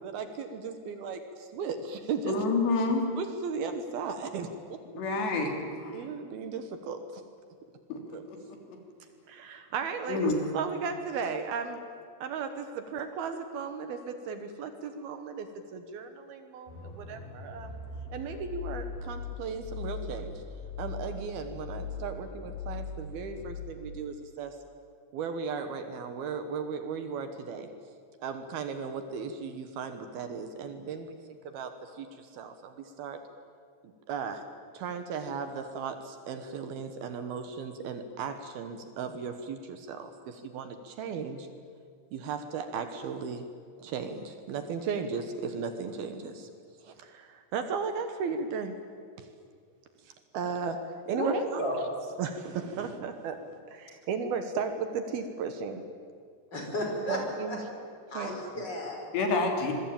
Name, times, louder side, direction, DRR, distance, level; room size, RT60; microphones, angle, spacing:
voice 1, 0.0-2.4 3.2-4.8 5.9-7.2 8.1-8.2 9.3-11.8 12.2-17.8 18.1-20.4 20.8-24.6 25.1-27.7 28.2-33.2 33.8-34.4 34.7-41.5 42.1-43.5 43.8-46.5 46.8-48.8 49.2-49.3 50.0-51.6 52.2-53.4 53.7-55.8 57.1-57.6 58.1-58.6, right 5 dB, 70° right, 8 dB, 2.9 m, -36 dB
voice 2, 2.3-3.0 4.9-6.1 7.9-8.6 10.1-10.4 59.1-59.7, left 3 dB, 75° left, 3 dB, 5.2 m, -28 dB
sound 1, 16.7-23.7, left 5 dB, 55° left, 6.0 m, -40 dB
voice 3, 51.1-51.7 56.5-57.2 57.5-57.6 58.1-59.1, left 1 dB, 25° left, 1 dB, 5.5 m, -33 dB
26.0 x 22.5 x 8.9 m, 2.1 s
omnidirectional pair, 5.1 m